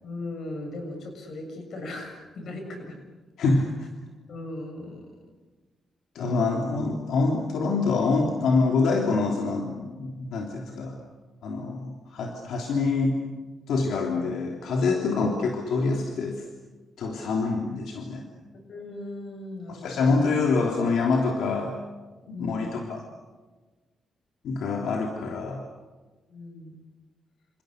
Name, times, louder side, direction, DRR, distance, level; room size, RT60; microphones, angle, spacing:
voice 1, 0.0-3.0 4.3-5.1 15.1-15.2 18.5-20.3 22.3-22.8 26.3-26.8, left 2 dB, 55° left, 4 dB, 6.7 m, -38 dB
voice 2, 3.4-3.7 6.2-11.0 11.4-13.2 13.7-16.4 17.0-18.2 19.7-21.7 22.3-23.0 24.4-25.6, left 3 dB, 75° left, 1 dB, 3.4 m, -25 dB
29.0 x 27.5 x 6.6 m, 1.3 s
wide cardioid pair, 180°, 0 cm